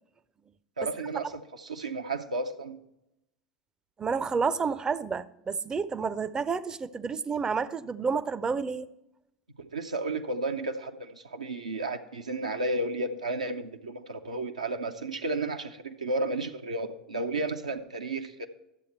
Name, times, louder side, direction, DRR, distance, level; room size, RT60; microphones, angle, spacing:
voice 1, 0.8-2.8 9.6-18.5, right 2 dB, 85° right, 0.6 m, -33 dB
voice 2, 4.0-8.9, right 5 dB, 20° right, 0.5 m, -30 dB
11.5 x 7.7 x 4.4 m
figure-of-eight pair, 80°, 4 cm